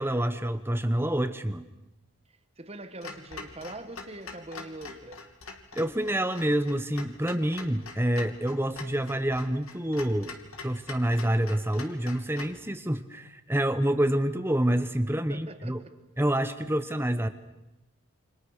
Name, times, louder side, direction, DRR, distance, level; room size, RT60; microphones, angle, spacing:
voice 1, 0.0-1.6 5.7-10.3 10.6-15.8 16.2-17.3, right 1 dB, 10° right, 10 dB, 0.9 m, -27 dB
voice 2, 2.6-5.2 15.3-15.9, right 2 dB, 25° right, 9 dB, 1.3 m, -42 dB
Clock, 3.0-12.6, left 4 dB, 70° left, 2.8 m, -44 dB
28.5 x 26.5 x 6.5 m, 0.96 s
head